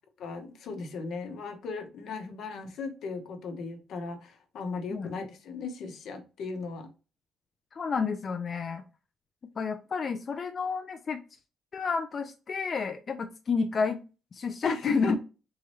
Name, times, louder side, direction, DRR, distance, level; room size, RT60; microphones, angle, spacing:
voice 1, 0.2-6.9 14.6-15.2, left 4 dB, 70° left, 0.9 m, -36 dB
voice 2, 7.7-8.8 9.6-11.2 11.7-14.0 14.3-15.2, left 5 dB, 45° left, 0.4 m, -30 dB
3.6 x 3.0 x 3.0 m
cardioid pair, 90°, 0 cm